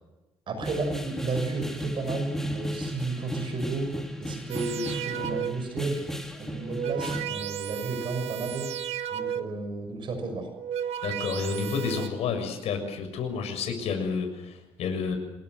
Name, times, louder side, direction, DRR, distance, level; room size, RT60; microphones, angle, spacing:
voice 1, 0.5-3.9 4.2-6.0 6.4-8.7 9.1-10.5, right 3 dB, 50° right, 7 dB, 6.3 m, -33 dB
sound 1, 0.6-7.3, equal, 5° left, 3.0 m, -35 dB
sound 2, 4.5-5.8 6.5-9.7 10.4-12.1, right 9 dB, 75° right, 1.6 m, -34 dB
voice 2, 11.0-15.2, left 5 dB, 80° left, 6 dB, 6.7 m, -30 dB
27.0 x 21.5 x 8.2 m, 1.0 s
cardioid pair, 155°, 11 cm